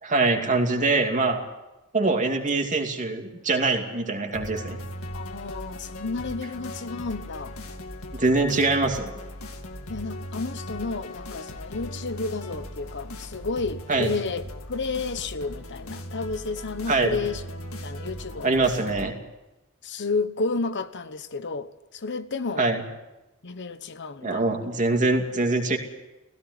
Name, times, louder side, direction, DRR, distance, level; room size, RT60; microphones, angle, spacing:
voice 1, 0.0-1.4 1.9-4.8 8.1-9.1 13.9-14.1 16.9-17.2 18.4-19.1 22.6-22.8 24.2-25.8, right 3 dB, 35° right, 2.6 m, -23 dB
sound 1, 4.3-19.1, left 1 dB, 80° left, 2.1 m, -38 dB
voice 2, 5.1-7.5 9.9-17.4 17.8-18.5 19.8-22.7 23.4-24.5, left 3 dB, 55° left, 1.1 m, -31 dB
17.0 x 16.5 x 9.5 m
head